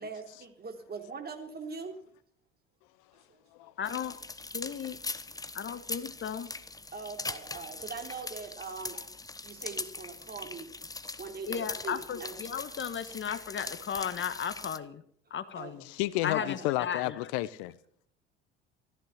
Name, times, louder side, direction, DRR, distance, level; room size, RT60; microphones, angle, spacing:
voice 1, 0.0-2.0 3.3-3.4 6.9-9.1 9.4-10.7 11.2-12.3 15.5-15.7 16.3-16.5, right 4 dB, 30° right, 3.4 m, -41 dB
voice 2, 3.8-4.2 4.5-5.0 5.5-6.5 11.5-15.0 15.3-15.9 16.2-17.3, left 8 dB, 40° left, 1.4 m, -35 dB
sound 1, 3.8-14.8, left 3 dB, 10° left, 1.0 m, -41 dB
voice 3, 15.8-17.8, left 17 dB, 70° left, 0.8 m, -31 dB
15.0 x 14.5 x 5.9 m
hypercardioid pair, 60°, 30 cm